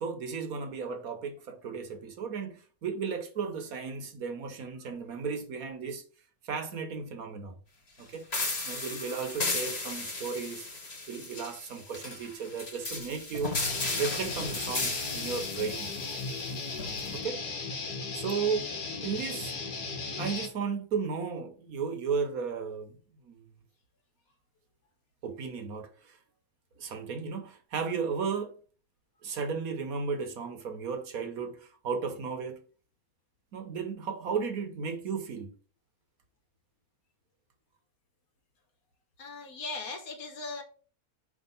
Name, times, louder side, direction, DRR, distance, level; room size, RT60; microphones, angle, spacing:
voice 1, 0.0-6.0 6.4-7.5 8.0-8.2 8.6-10.7 11.1-13.6 13.9-15.9 17.1-17.4 18.1-19.5 20.2-22.9 23.2-23.4 25.2-26.2 26.8-28.6 29.2-32.6 33.5-35.5, right 5 dB, 65° right, 1.3 m, -34 dB
sound 1, 8.3-17.2, left 3 dB, 40° left, 1.7 m, -35 dB
Guitar, 13.6-20.5, left 4 dB, 80° left, 1.8 m, -36 dB
voice 2, 39.2-40.6, left 3 dB, 65° left, 1.6 m, -39 dB
5.0 x 3.7 x 5.4 m
omnidirectional pair, 1.7 m